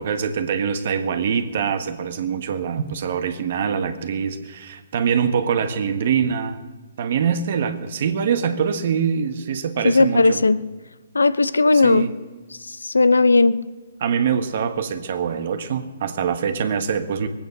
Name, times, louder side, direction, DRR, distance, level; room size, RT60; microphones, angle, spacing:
voice 1, 0.0-6.6 7.0-10.4 11.7-12.1 14.0-17.3, right 7 dB, 55° right, 1.4 m, -24 dB
voice 2, 9.8-10.6 11.1-12.1 12.6-13.6, left 3 dB, 90° left, 0.6 m, -17 dB
20.5 x 8.9 x 6.7 m
hypercardioid pair, 135°, 0 cm